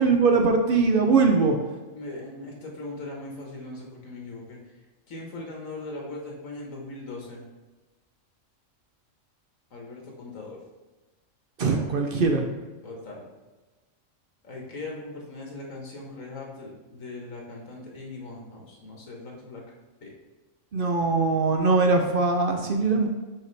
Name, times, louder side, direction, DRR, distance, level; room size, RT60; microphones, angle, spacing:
voice 1, 0.0-1.6 11.6-12.5 20.7-23.1, right 4 dB, 55° right, 3 dB, 0.7 m, -21 dB
voice 2, 1.9-4.6 5.1-7.4 9.7-10.6 11.7-11.8 12.8-13.2 14.4-19.6 20.0-20.1, left 2 dB, 85° left, -1 dB, 1.7 m, -39 dB
6.4 x 4.7 x 3.3 m, 1.2 s
omnidirectional pair, 1.4 m